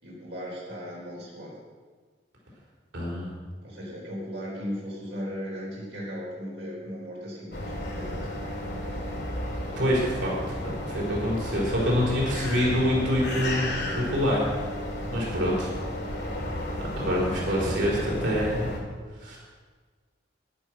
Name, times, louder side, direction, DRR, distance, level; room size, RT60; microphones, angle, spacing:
voice 1, 0.0-1.5 3.6-8.2, equal, 70° right, -6 dB, 4.1 m, -37 dB
voice 2, 2.9-3.3 9.8-14.4 15.1-15.7 17.0-18.7 19.2-19.4, equal, 90° right, -4 dB, 4.4 m, -26 dB
sound 1, 7.5-18.8, left 1 dB, 60° left, 3.1 m, -33 dB
11.5 x 10.5 x 6.2 m, 1.5 s
head